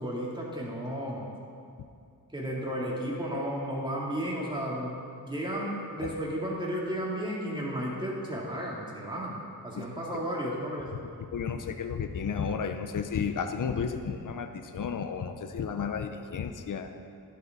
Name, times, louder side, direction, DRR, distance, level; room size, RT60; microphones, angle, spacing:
voice 1, 0.0-1.3 2.3-4.9 5.2-9.4 9.6-10.9, equal, 10° right, -5 dB, 3.1 m, -33 dB
voice 2, 11.3-16.9, left 6 dB, 55° left, 7 dB, 0.8 m, -32 dB
13.0 x 10.5 x 4.1 m, 2.4 s
wide cardioid pair, 85°, 37 cm